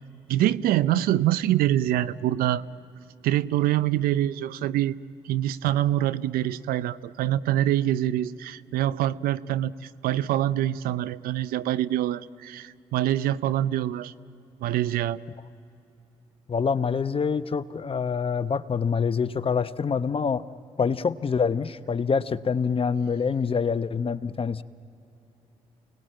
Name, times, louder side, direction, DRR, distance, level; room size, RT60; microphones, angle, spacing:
voice 1, 0.3-2.6 3.2-5.0 5.2-14.1 14.6-15.2, right 13 dB, 75° right, 16 dB, 0.6 m, -25 dB
voice 2, 16.5-20.4 20.8-24.6, left 5 dB, 35° left, 13 dB, 0.9 m, -26 dB
28.5 x 19.5 x 9.0 m, 2.8 s
hypercardioid pair, 50°, 15 cm